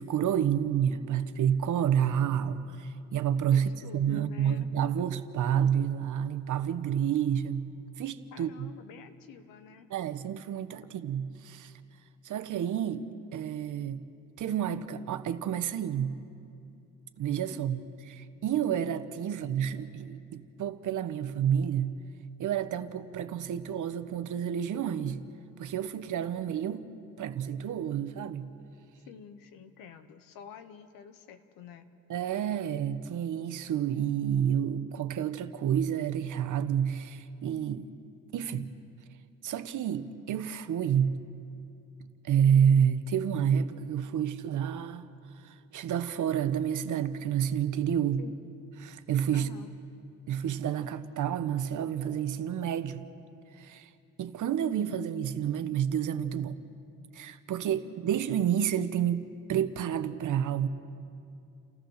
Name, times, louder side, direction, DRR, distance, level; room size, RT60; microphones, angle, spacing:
voice 1, 0.0-7.7 8.0-8.7 9.9-11.7 12.2-14.0 14.4-16.2 17.2-17.8 18.1-22.0 22.4-25.2 25.6-26.8 27.2-28.5 32.1-37.9 38.3-38.7 39.4-41.2 42.0-45.1 45.4-48.2 48.8-49.5 50.3-53.0 53.6-53.9 54.2-56.6 57.1-60.7, right 9 dB, 65° right, 1.1 m, -29 dB
voice 2, 3.5-4.7 8.3-9.9 17.5-17.9 29.1-31.9 48.2-48.4 49.3-49.7, left 7 dB, 80° left, 1.3 m, -48 dB
29.5 x 14.0 x 6.6 m
supercardioid pair, 75°, 33 cm